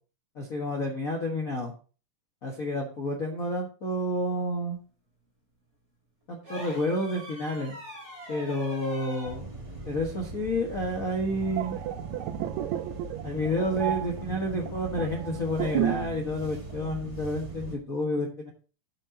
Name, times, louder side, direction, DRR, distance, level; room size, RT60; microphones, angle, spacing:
voice 1, 0.5-1.7 2.4-4.8 6.3-7.8 8.3-9.5 9.8-11.8 13.2-18.5, left 1 dB, 50° left, -1 dB, 1.0 m, -30 dB
sound 1, 6.4-9.4 11.1-11.2, equal, 20° right, 3.3 m, -42 dB
sound 2, 9.2-17.7, right 3 dB, 60° right, 0.3 m, -40 dB
sound 3, 11.3-16.2 16.5-16.7, right 12 dB, 80° right, 1.7 m, -32 dB
9.1 x 7.5 x 3.8 m, 0.36 s
omnidirectional pair, 3.7 m